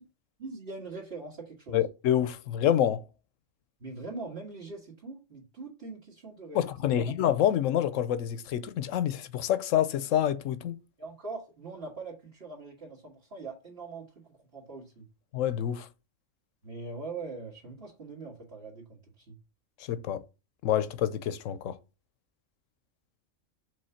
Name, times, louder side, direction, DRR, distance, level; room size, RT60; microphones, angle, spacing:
voice 1, 0.4-1.8 3.8-7.1 11.0-15.1 16.6-19.4, right 3 dB, 50° right, 1.9 m, -42 dB
voice 2, 1.7-3.0 6.5-10.8 15.3-15.9 19.8-20.3 20.6-21.8, left 10 dB, 80° left, 1.0 m, -27 dB
5.3 x 3.8 x 5.6 m
omnidirectional pair, 1.3 m